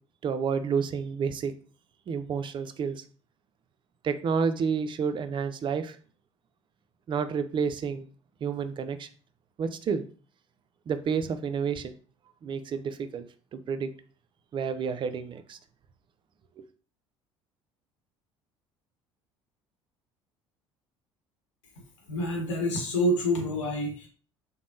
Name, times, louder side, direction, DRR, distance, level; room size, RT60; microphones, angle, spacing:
voice 1, 0.2-1.5 2.1-3.0 4.0-6.0 7.1-8.1 8.4-9.1 9.6-10.0 10.9-11.9 12.4-13.3 13.5-13.9 14.5-15.6 16.6-16.7, right 6 dB, 30° right, 10 dB, 0.4 m, -30 dB
voice 2, 22.1-24.1, equal, 80° left, 1 dB, 0.9 m, -27 dB
3.3 x 2.0 x 2.6 m, 0.40 s
hypercardioid pair, 60°, 15 cm